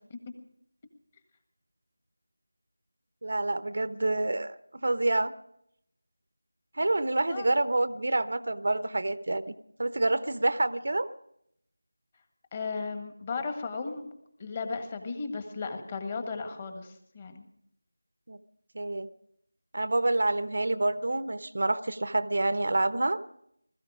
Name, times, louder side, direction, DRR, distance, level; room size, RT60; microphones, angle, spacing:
voice 1, 3.2-5.3 6.8-9.4 9.8-11.1 18.3-18.4 18.7-19.1 19.7-23.2, right 2 dB, 55° right, 13 dB, 0.8 m, -27 dB
voice 2, 12.5-14.1 14.4-17.4, left 4 dB, 20° left, 6 dB, 1.7 m, -35 dB
20.5 x 14.0 x 5.0 m, 0.73 s
figure-of-eight pair, 170°, 0 cm